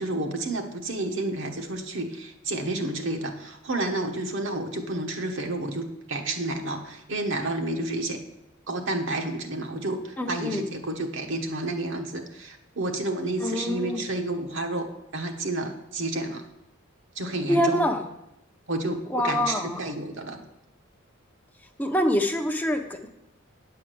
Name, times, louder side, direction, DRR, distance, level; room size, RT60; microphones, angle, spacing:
voice 1, 0.0-8.2 8.7-16.4 17.2-17.8 18.7-20.4, right 2 dB, 65° right, 4 dB, 1.2 m, -30 dB
voice 2, 10.2-10.7 13.4-14.0 17.5-18.0 19.1-19.8 21.8-23.1, left 1 dB, 10° left, 4 dB, 0.7 m, -25 dB
9.4 x 4.9 x 7.6 m, 0.87 s
head